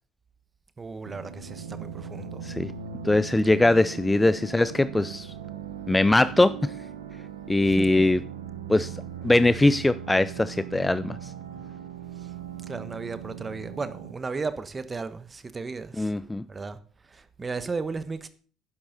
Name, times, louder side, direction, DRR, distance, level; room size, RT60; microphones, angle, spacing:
voice 1, 0.8-2.4 7.6-8.1 12.2-12.3 12.7-16.1 16.5-16.8 17.1-18.3, right 4 dB, 25° right, 1.3 m, -35 dB
sound 1, 1.0-14.1, right 8 dB, 80° right, 1.2 m, -39 dB
voice 2, 3.0-5.3 5.9-6.7 7.5-8.2 8.7-8.9 9.2-11.3 16.0-16.4, left 2 dB, 10° left, 0.4 m, -21 dB
12.0 x 10.0 x 4.0 m
figure-of-eight pair, 55°, 0 cm